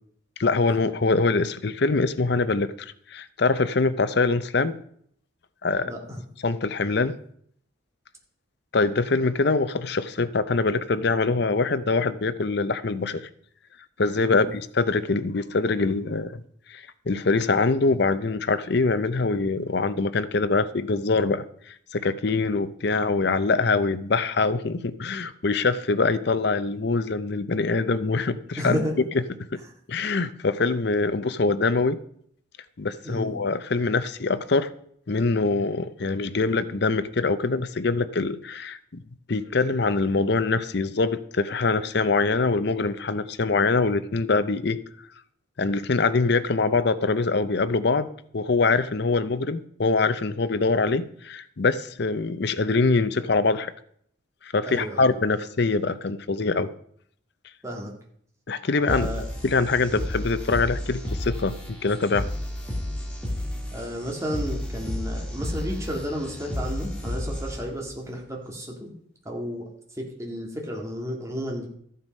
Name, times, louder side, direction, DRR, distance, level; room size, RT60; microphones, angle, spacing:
voice 1, 0.4-4.8 5.6-5.9 6.4-7.2 8.7-13.3 14.0-16.4 16.7-28.8 29.1-29.2 29.5-29.6 29.9-32.0 32.8-34.7 35.1-39.0 39.3-44.8 45.6-48.1 48.3-53.7 54.4-56.7 58.5-61.5 61.8-62.3, left 3 dB, 55° left, 13 dB, 0.6 m, -24 dB
voice 2, 5.8-6.2 14.2-14.5 28.6-28.9 33.0-33.3 54.6-55.1 57.6-57.9 58.9-59.2 63.7-68.9 69.3-69.7 70.0-71.7, equal, 15° right, 0 dB, 2.0 m, -32 dB
sound 1, 58.9-67.9, left 1 dB, 5° left, 2.1 m, -32 dB
13.5 x 7.6 x 5.4 m, 0.66 s
head